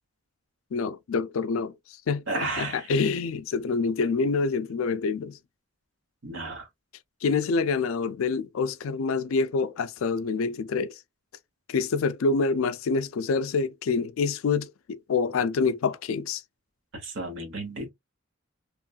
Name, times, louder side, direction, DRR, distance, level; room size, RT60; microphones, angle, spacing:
voice 1, 0.7-1.7 2.1-5.4 7.2-11.0 11.7-16.4, left 4 dB, 75° left, 0.4 m, -26 dB
voice 2, 2.3-2.9 6.2-6.7 16.9-17.9, right 2 dB, 65° right, 1.1 m, -33 dB
3.0 x 2.2 x 2.4 m
head